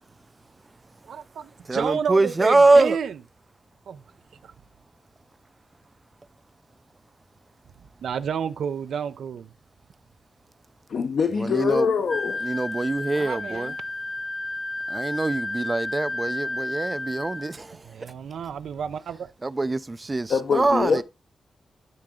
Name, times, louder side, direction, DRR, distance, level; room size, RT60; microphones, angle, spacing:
voice 1, 1.0-3.1 3.9-4.0 4.4-4.5 8.0-9.5 13.1-13.8 17.9-19.3 20.9-21.0, right 7 dB, 85° right, 0.4 m, -30 dB
voice 2, 1.7-3.0 11.3-11.9 12.4-13.7 14.9-17.8 19.4-21.0, right 2 dB, 20° right, 0.3 m, -23 dB
voice 3, 10.9-12.5 20.3-21.0, left 6 dB, 65° left, 0.7 m, -24 dB
Wind instrument woodwind instrument, 12.1-17.5, left 2 dB, 25° left, 0.8 m, -32 dB
10.5 x 3.9 x 3.6 m
wide cardioid pair, 145°, 0 cm